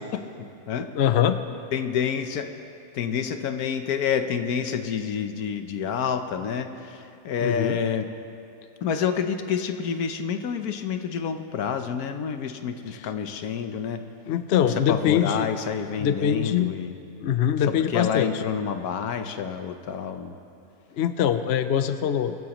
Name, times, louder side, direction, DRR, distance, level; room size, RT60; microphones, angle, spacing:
voice 1, 0.0-0.9 1.7-2.5 2.9-8.1 8.8-14.0 14.7-16.9 17.7-20.3, left 7 dB, 75° left, 8 dB, 1.3 m, -28 dB
voice 2, 0.9-1.4 7.4-7.8 13.0-13.1 14.3-15.5 16.0-16.7 17.2-18.4 21.0-22.3, left 9 dB, 60° left, 10 dB, 0.7 m, -23 dB
23.5 x 14.5 x 3.0 m, 2.6 s
omnidirectional pair, 1.6 m